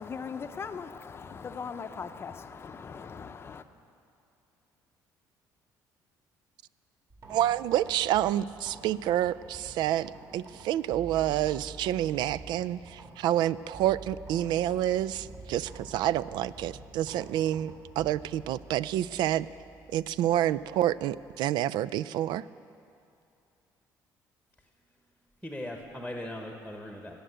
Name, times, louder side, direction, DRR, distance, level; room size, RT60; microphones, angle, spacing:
voice 1, 0.0-3.6, left 6 dB, 30° left, 9 dB, 0.6 m, -39 dB
sound 1, 7.1-21.4, right 3 dB, 45° right, 2.6 m, -49 dB
voice 2, 7.3-19.5 19.9-22.5, right 12 dB, 75° right, 17 dB, 0.3 m, -28 dB
voice 3, 25.4-27.2, left 1 dB, ahead, 2 dB, 1.2 m, -39 dB
17.5 x 6.6 x 8.0 m, 2.5 s
cardioid pair, 110°, 8 cm